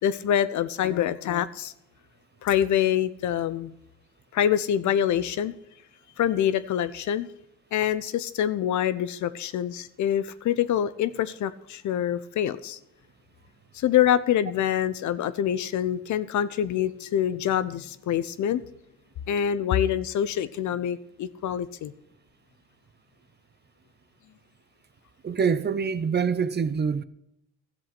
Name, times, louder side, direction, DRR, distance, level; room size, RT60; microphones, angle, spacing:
voice 1, 0.0-1.7 2.4-3.7 4.3-5.5 6.2-7.3 7.7-12.8 13.7-18.6 19.3-21.9, left 10 dB, 70° left, 0.8 m, -25 dB
voice 2, 25.2-27.0, right 6 dB, 35° right, 0.7 m, -25 dB
13.0 x 7.7 x 6.0 m
cardioid pair, 90°, 30 cm